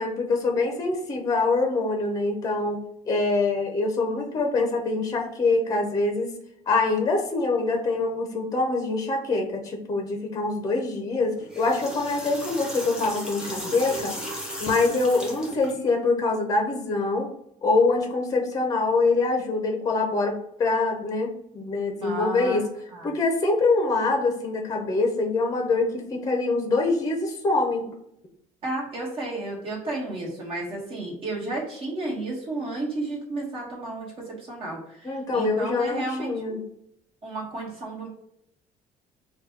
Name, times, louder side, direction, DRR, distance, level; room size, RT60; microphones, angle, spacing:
voice 1, 0.0-2.8 3.1-6.3 6.7-14.1 14.6-17.3 17.6-22.6 23.0-27.9 35.0-36.6, left 3 dB, 25° left, 2 dB, 0.6 m, -24 dB
sound 1, 11.4-15.7, equal, 5° right, 1.0 m, -36 dB
voice 2, 22.0-22.6 22.9-23.1 28.6-36.6 37.2-38.1, right 2 dB, 40° right, -3 dB, 1.5 m, -32 dB
3.8 x 2.3 x 4.2 m, 0.75 s
cardioid pair, 160°, 14 cm